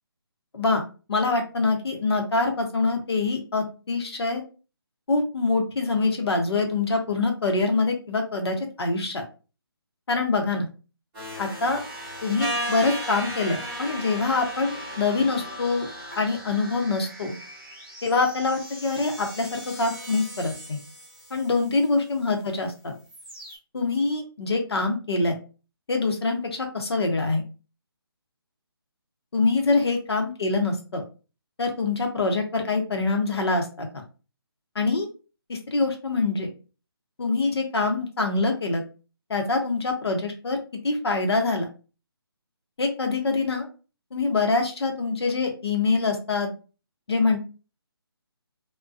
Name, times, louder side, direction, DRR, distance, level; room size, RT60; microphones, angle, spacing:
voice 1, 1.1-4.4 5.1-9.2 10.1-10.7 11.4-11.8 12.2-15.9 16.2-17.3 18.0-20.8 21.3-22.9 23.7-25.4 25.9-27.4 29.3-31.0 31.6-33.9 34.7-35.1 35.5-36.5 37.2-38.8 39.3-40.6 40.8-41.7 42.8-43.7 44.1-46.5 47.1-47.4, left 3 dB, 75° left, 4 dB, 0.8 m, -25 dB
sound 1, 11.1-21.9 22.3-22.7 23.0-23.6, equal, 10° right, 0.9 m, -37 dB
2.3 x 2.2 x 2.4 m, 0.34 s
hypercardioid pair, 165°, 13 cm